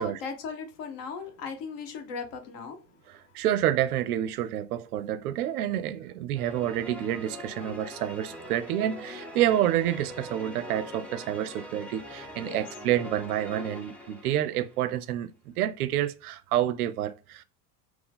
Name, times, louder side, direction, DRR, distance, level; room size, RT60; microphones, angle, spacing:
voice 1, 0.0-2.8 12.4-12.6, left 4 dB, 45° left, 1.0 m, -37 dB
voice 2, 3.1-17.4, right 12 dB, 65° right, 0.5 m, -28 dB
sound 1, 6.3-14.9, left 1 dB, 5° left, 0.3 m, -42 dB
4.4 x 2.1 x 3.6 m
figure-of-eight pair, 75°, 49 cm